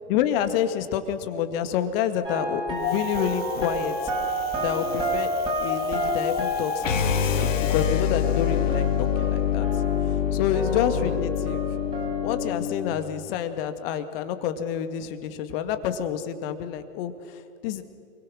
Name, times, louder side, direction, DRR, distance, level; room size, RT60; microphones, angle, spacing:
voice 1, 0.1-4.1 4.6-5.3 5.6-9.7 10.1-11.8 12.2-17.8, left 9 dB, 40° left, 9 dB, 2.0 m, -28 dB
sound 1, 2.2-10.3 10.5-12.3, right 1 dB, 10° right, 6.2 m, -30 dB
Wind, 2.8-7.9, left 12 dB, 20° left, 1.0 m, -35 dB
sound 2, 6.8-13.0, left 9 dB, 65° left, 2.0 m, -25 dB
28.5 x 22.0 x 6.4 m, 2.4 s
figure-of-eight pair, 105°, 42 cm